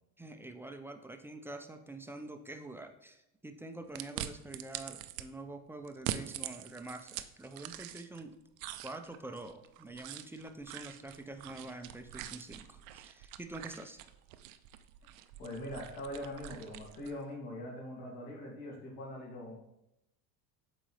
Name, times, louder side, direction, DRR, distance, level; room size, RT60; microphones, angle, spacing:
voice 1, 0.2-8.3 8.8-14.0, right 2 dB, 5° right, 6 dB, 0.3 m, -46 dB
sound 1, 4.0-5.3 5.9-8.2 8.6-17.2, right 12 dB, 90° right, 0.5 m, -44 dB
voice 2, 15.4-19.6, left 1 dB, 65° left, -2 dB, 2.3 m, -42 dB
7.5 x 4.1 x 3.2 m, 0.85 s
supercardioid pair, 100°, 39 cm